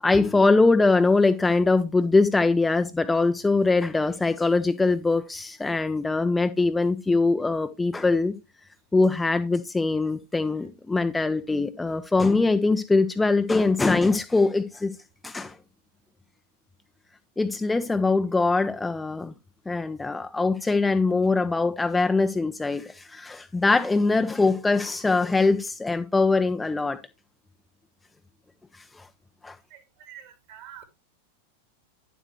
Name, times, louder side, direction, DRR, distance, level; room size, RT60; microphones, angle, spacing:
voice 1, 0.0-8.3 8.9-15.0 15.2-15.5 17.4-19.3 19.7-27.0 29.0-29.1 29.4-29.6, left 3 dB, 10° left, 0.7 m, -22 dB
voice 2, 30.1-30.8, right 10 dB, 45° right, 2.6 m, -45 dB
10.5 x 7.4 x 3.2 m
figure-of-eight pair, 90°, 0 cm